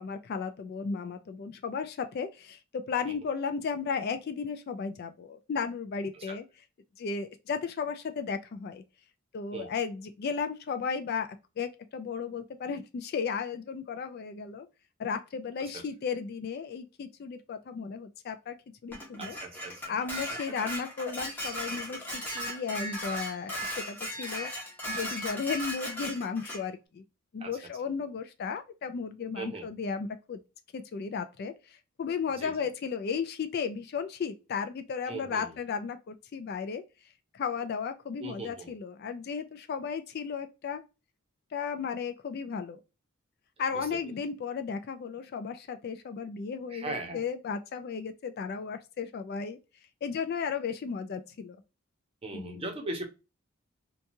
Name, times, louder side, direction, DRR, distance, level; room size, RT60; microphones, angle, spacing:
voice 1, 0.0-6.5 7.0-8.8 9.3-14.7 15.0-18.6 18.8-19.4 19.9-24.5 24.9-27.0 27.3-30.4 30.7-36.8 37.3-40.8 41.5-42.8 43.6-49.6 50.0-51.6 52.3-52.7, left 6 dB, 45° left, 0.3 m, -34 dB
Dishes pots and pans, 18.9-26.6, equal, 10° left, 0.8 m, -37 dB
voice 2, 19.2-19.9 27.4-27.5 29.4-29.7 32.4-32.5 35.1-35.5 38.2-38.7 43.7-43.8 46.7-47.2 52.2-53.0, right 2 dB, 25° right, 0.7 m, -39 dB
2.9 x 2.3 x 2.5 m
head